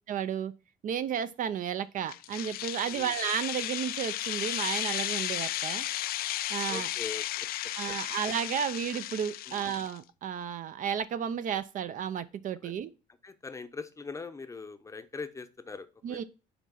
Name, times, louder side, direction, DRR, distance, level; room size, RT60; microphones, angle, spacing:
voice 1, 0.1-0.5 0.8-5.9 6.5-6.9 7.8-12.9 16.0-16.2, right 8 dB, 50° right, 0.5 m, -33 dB
sound 1, 2.1-10.0, left 14 dB, 60° left, 0.4 m, -34 dB
voice 2, 6.7-8.0 9.4-9.7 12.6-12.8 13.2-16.2, left 4 dB, 20° left, 0.6 m, -42 dB
5.9 x 4.2 x 5.5 m
cardioid pair, 110°, 17 cm